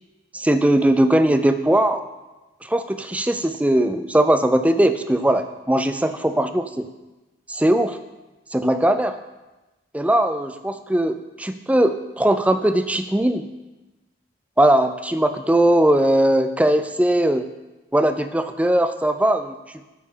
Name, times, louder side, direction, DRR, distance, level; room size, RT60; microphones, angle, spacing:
voice 1, 0.3-2.0 2.6-6.9 7.5-8.0 8.5-9.2 9.9-13.4 14.6-17.5 17.9-19.6, right 1 dB, 10° right, 9 dB, 0.4 m, -19 dB
11.0 x 8.5 x 3.8 m, 1.1 s
head